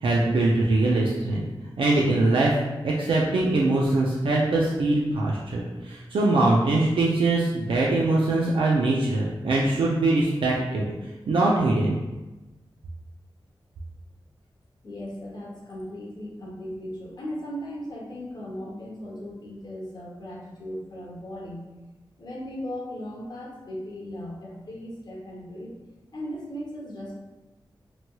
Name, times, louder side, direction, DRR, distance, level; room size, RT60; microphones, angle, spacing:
voice 1, 0.0-1.4 1.8-10.9 11.3-12.0, right 2 dB, 80° right, -4 dB, 0.4 m, -22 dB
voice 2, 14.8-21.6 22.2-25.7 26.1-27.2, equal, 50° left, -4 dB, 0.8 m, -37 dB
2.9 x 2.9 x 2.2 m, 1.1 s
wide cardioid pair, 115°, 9 cm